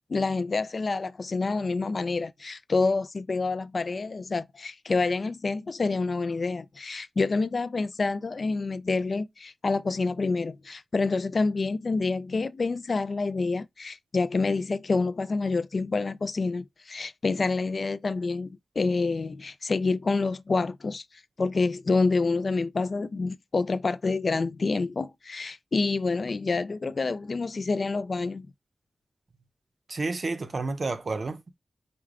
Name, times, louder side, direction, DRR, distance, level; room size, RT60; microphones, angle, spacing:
voice 1, 0.1-21.0 21.4-28.5, left 3 dB, 50° left, 0.3 m, -27 dB
voice 2, 29.9-31.6, right 3 dB, 45° right, 0.6 m, -30 dB
5.0 x 2.2 x 3.5 m
wide cardioid pair, 125°, 0 cm